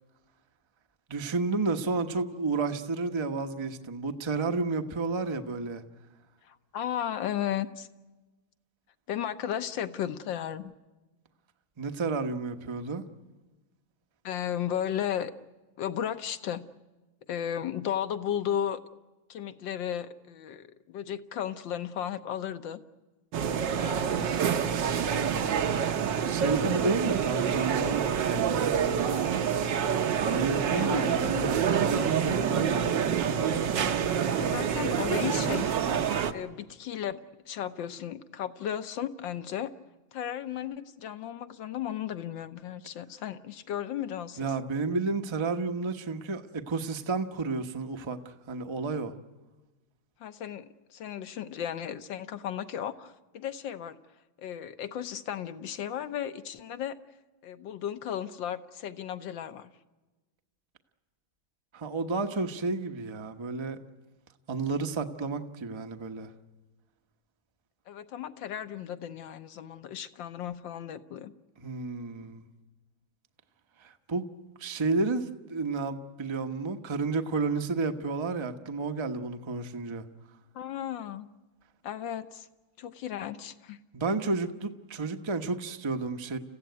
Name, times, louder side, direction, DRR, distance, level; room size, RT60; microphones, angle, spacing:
voice 1, 1.1-5.8 11.8-13.0 26.2-28.6 30.2-33.4 44.4-49.1 61.7-63.8 64.5-66.3 71.6-72.4 73.8-74.3 74.6-80.0 83.9-86.4, right 3 dB, 25° right, 6 dB, 0.7 m, -31 dB
voice 2, 6.5-7.9 9.1-10.7 14.3-15.3 15.8-16.7 17.3-18.8 19.3-22.8 23.8-24.2 30.7-31.2 34.2-35.7 36.3-37.2 37.5-39.7 40.1-44.5 50.2-54.0 54.4-57.0 57.4-59.7 67.9-71.3 80.6-81.3 81.8-82.5 82.8-83.8, left 10 dB, 70° left, 11 dB, 1.7 m, -35 dB
sound 1, 23.3-36.3, right 8 dB, 65° right, 1.6 m, -27 dB
30.0 x 15.5 x 9.4 m, 1.2 s
omnidirectional pair, 2.2 m